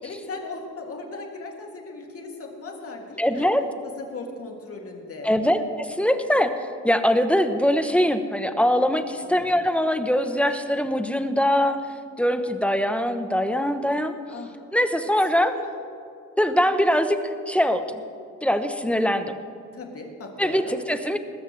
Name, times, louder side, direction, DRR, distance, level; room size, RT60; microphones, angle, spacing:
voice 1, 0.0-3.5 4.0-5.3 9.2-9.6 14.3-14.6 15.3-15.8 19.7-20.7, left 3 dB, 50° left, 1 dB, 2.7 m, -38 dB
voice 2, 3.2-3.6 5.2-6.5 6.8-11.8 12.2-14.1 14.7-15.5 16.4-17.2 17.5-17.8 18.4-19.4 20.4-21.2, equal, 5° left, 9 dB, 0.9 m, -22 dB
20.5 x 14.0 x 3.3 m, 2.5 s
cardioid pair, 90°, 30 cm